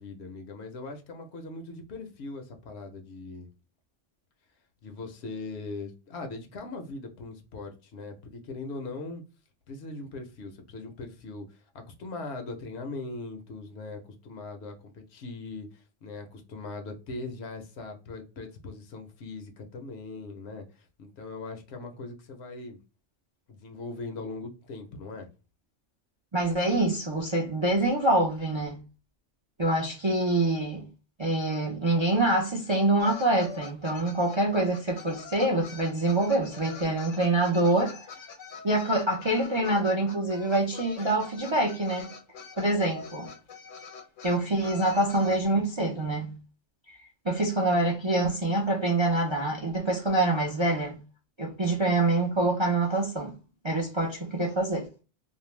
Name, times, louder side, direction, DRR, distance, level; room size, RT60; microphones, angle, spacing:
voice 1, 0.0-3.5 4.8-9.2 9.7-22.8 23.5-25.3, left 3 dB, 65° left, 0.9 m, -40 dB
voice 2, 26.3-28.8 29.6-30.8 31.2-38.1 38.6-42.1 42.6-43.3 44.2-46.4 46.9-47.0 47.2-51.0 51.4-53.3 53.6-54.9, right 2 dB, 40° right, 0.4 m, -25 dB
sound 1, 33.0-45.4, left 5 dB, 85° left, 1.1 m, -45 dB
2.5 x 2.1 x 3.0 m
omnidirectional pair, 1.3 m